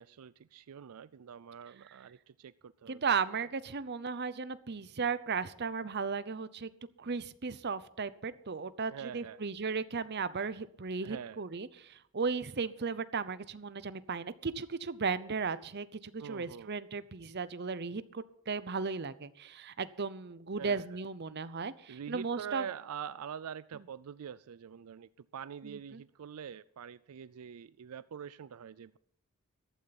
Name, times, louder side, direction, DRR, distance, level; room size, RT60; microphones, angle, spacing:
voice 1, 0.0-3.2 8.9-9.4 11.0-11.4 16.2-16.7 20.6-21.0 21.9-29.0, right 8 dB, 80° right, 17 dB, 0.4 m, -45 dB
voice 2, 2.9-6.7 7.0-22.6 25.6-26.0, right 5 dB, 50° right, 15 dB, 0.7 m, -36 dB
14.5 x 12.5 x 4.1 m, 0.68 s
head